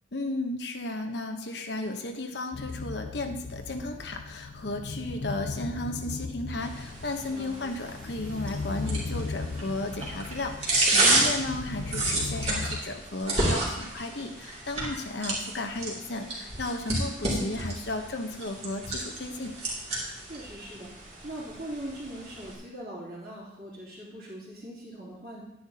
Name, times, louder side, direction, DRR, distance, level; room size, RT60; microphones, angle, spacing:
voice 1, 0.1-19.6, left 2 dB, 65° left, 4 dB, 1.0 m, -34 dB
sound 1, 2.5-12.8, left 3 dB, 80° left, 0.5 m, -37 dB
sound 2, 6.6-22.5, right 2 dB, 35° right, 2.6 m, -31 dB
voice 2, 7.3-7.8 20.2-25.4, right 1 dB, 50° right, -12 dB, 3.1 m, -41 dB
11.0 x 10.0 x 2.8 m, 0.87 s
head